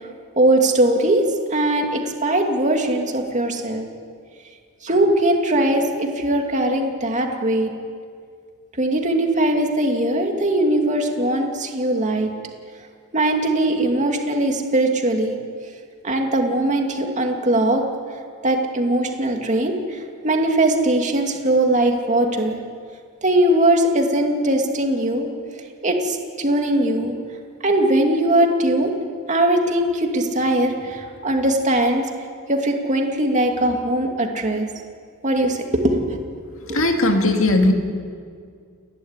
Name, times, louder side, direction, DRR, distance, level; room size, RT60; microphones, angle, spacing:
voice 1, 0.4-3.9 4.8-7.7 8.8-12.3 13.1-15.4 16.0-17.8 18.4-22.6 23.2-25.3 25.8-27.1 27.6-28.9 29.3-32.0 32.5-34.7 35.2-36.2 36.7-36.8, right 1 dB, 35° right, 2 dB, 2.5 m, -20 dB
voice 2, 36.7-37.7, left 2 dB, 70° left, 3 dB, 2.5 m, -17 dB
29.5 x 12.0 x 9.7 m, 2.1 s
head